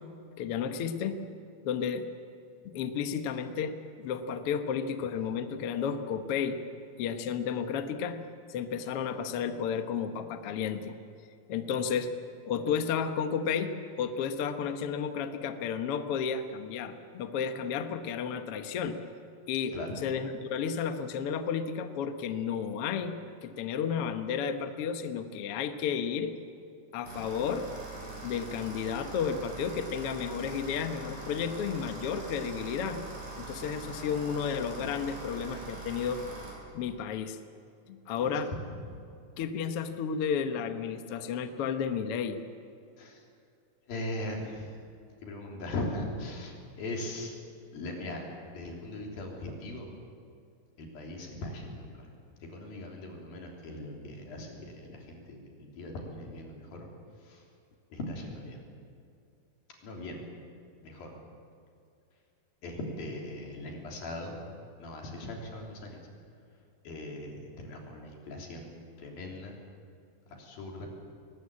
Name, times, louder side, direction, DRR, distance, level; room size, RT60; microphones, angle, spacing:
voice 1, 0.4-1.2 1.6-2.1 2.6-6.6 7.0-8.2 8.5-10.9 11.5-12.1 12.4-19.0 19.5-19.7 20.0-23.1 23.4-26.3 26.9-27.7 28.2-33.0 33.4-36.2 36.7-37.4 37.9-38.5 39.4-42.4, left 7 dB, 60° left, 7 dB, 1.6 m, -32 dB
sound 1, 27.0-36.5, right 3 dB, 85° right, 8.6 m, -43 dB
voice 2, 43.9-44.7 45.2-47.3 47.7-49.9 50.8-52.1 52.5-56.9 57.2-57.4 57.9-58.6 59.8-60.3 60.8-61.1 62.6-64.4 64.8-66.0 66.8-68.7 69.0-69.5 70.4-70.9, left 1 dB, 90° left, 0 dB, 5.3 m, -39 dB
21.5 x 19.5 x 8.5 m, 2.5 s
omnidirectional pair, 4.1 m